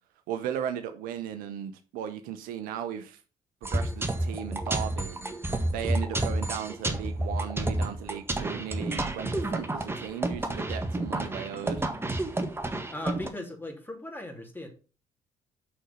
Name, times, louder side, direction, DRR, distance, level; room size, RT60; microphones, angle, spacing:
voice 1, 0.3-3.2 3.6-5.2 5.7-11.8, right 9 dB, 60° right, 0.9 m, -36 dB
sound 1, 3.6-13.3, right 1 dB, 15° right, 1.6 m, -30 dB
voice 2, 12.9-14.7, left 1 dB, 10° left, 2.9 m, -38 dB
6.4 x 6.2 x 5.5 m
figure-of-eight pair, 50°, 16 cm